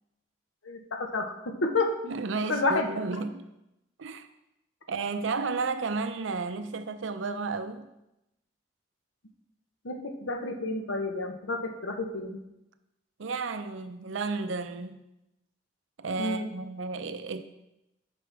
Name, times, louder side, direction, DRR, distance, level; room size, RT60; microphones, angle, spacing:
voice 1, 0.6-1.9 2.5-2.9 9.8-12.4 16.2-16.5, left 2 dB, 80° left, 0.9 m, -30 dB
voice 2, 2.0-3.5 4.0-4.3 4.9-7.9 13.2-15.0 16.0-17.4, right 4 dB, 75° right, 0.6 m, -32 dB
9.5 x 6.0 x 3.4 m
head